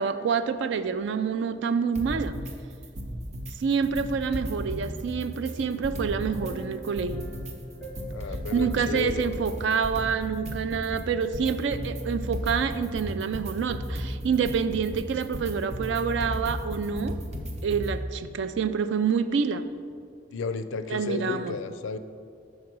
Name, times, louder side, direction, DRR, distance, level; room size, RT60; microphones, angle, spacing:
voice 1, 0.0-2.4 3.6-7.3 8.5-17.2 17.6-19.6 20.9-21.6, right 6 dB, 65° right, 12 dB, 0.3 m, -27 dB
sound 1, 1.9-2.5 2.8-3.5 3.8-6.5 6.8-18.0, equal, 35° right, 0.7 m, -35 dB
sound 2, 5.2-10.6 10.9-11.1, left 1 dB, 10° left, 0.6 m, -46 dB
voice 2, 8.1-9.2 20.3-22.0, left 4 dB, 80° left, 11 dB, 0.4 m, -32 dB
6.3 x 4.8 x 6.1 m, 2.3 s
head